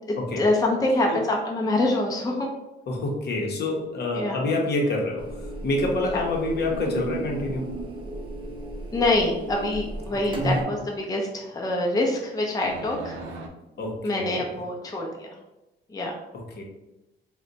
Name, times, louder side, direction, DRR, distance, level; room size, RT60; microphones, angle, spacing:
voice 1, 0.1-2.5 4.1-4.4 6.1-6.2 8.9-13.2 14.0-15.3 15.9-16.1, left 2 dB, 20° left, 0 dB, 0.5 m, -25 dB
voice 2, 2.9-7.7 13.8-14.4 16.6-16.7, left 2 dB, 55° left, 0 dB, 0.8 m, -27 dB
sound 1, 5.2-10.6, right 1 dB, 25° right, 0.6 m, -34 dB
sound 2, 6.7-8.5 12.6-13.5, right 4 dB, 75° right, 0.5 m, -36 dB
2.4 x 2.2 x 3.9 m, 0.96 s
cardioid pair, 90°, 20 cm